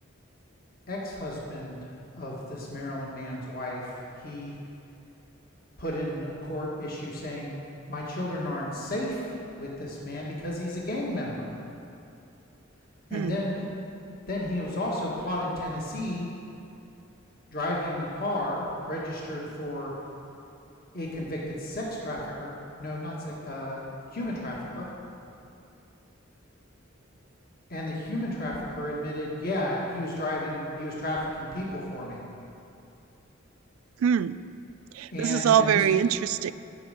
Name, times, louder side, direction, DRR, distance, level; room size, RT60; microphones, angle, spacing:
voice 1, 0.9-3.9 4.2-4.5 5.8-7.6 7.9-11.5 13.1-13.6 14.3-16.3 17.5-19.9 20.9-22.5 22.8-23.8 24.1-24.9 27.7-32.2 35.1-36.0, left 1 dB, 45° left, -4 dB, 1.6 m, -33 dB
voice 2, 34.0-34.4 35.0-36.5, right 8 dB, 85° right, 16 dB, 0.3 m, -23 dB
12.0 x 5.4 x 6.5 m, 2.6 s
head